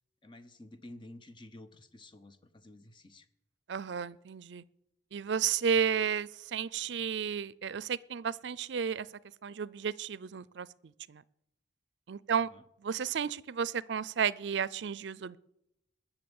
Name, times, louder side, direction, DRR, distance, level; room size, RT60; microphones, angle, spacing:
voice 1, 0.2-3.3 12.5-12.6, left 1 dB, 25° left, 10 dB, 0.8 m, -51 dB
voice 2, 3.7-4.6 5.1-9.1 9.4-10.7 11.1-11.2 12.1-12.5 12.8-15.4, right 7 dB, 75° right, 22 dB, 0.4 m, -32 dB
20.0 x 7.1 x 7.1 m, 0.85 s
head